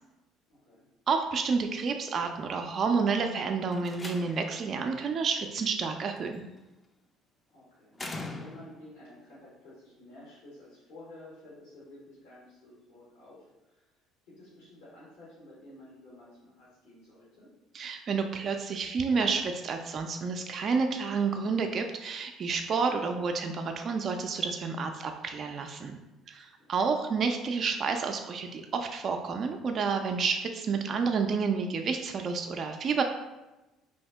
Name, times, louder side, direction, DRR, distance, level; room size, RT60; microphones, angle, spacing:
voice 1, 0.5-0.8 7.5-13.9 14.2-17.5 26.6-26.7, left 1 dB, 80° left, -9 dB, 1.2 m, -52 dB
voice 2, 1.1-6.4 17.7-25.9 26.3-33.0, right 5 dB, 45° right, 4 dB, 0.3 m, -30 dB
Slam, 3.6-4.7 6.2-6.6 7.9-8.9, left 2 dB, 25° left, 0.4 m, -41 dB
2.8 x 2.7 x 3.3 m, 1.0 s
hypercardioid pair, 65°, 0 cm